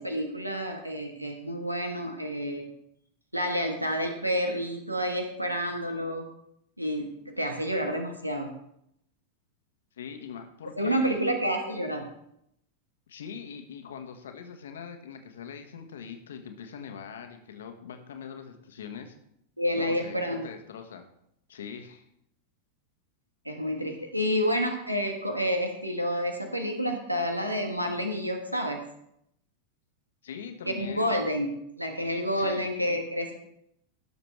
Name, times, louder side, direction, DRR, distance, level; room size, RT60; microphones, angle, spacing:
voice 1, 0.0-2.7 3.3-6.2 6.8-8.5 10.8-12.1 19.6-20.5 23.4-28.9 30.8-33.4, equal, 90° right, 4 dB, 1.2 m, -29 dB
voice 2, 10.0-11.2 13.1-19.2 19.7-21.0 21.5-22.0 30.2-31.2 32.4-32.7, left 7 dB, 65° left, 6 dB, 1.4 m, -42 dB
18.0 x 6.7 x 3.3 m, 0.75 s
figure-of-eight pair, 90°, 0 cm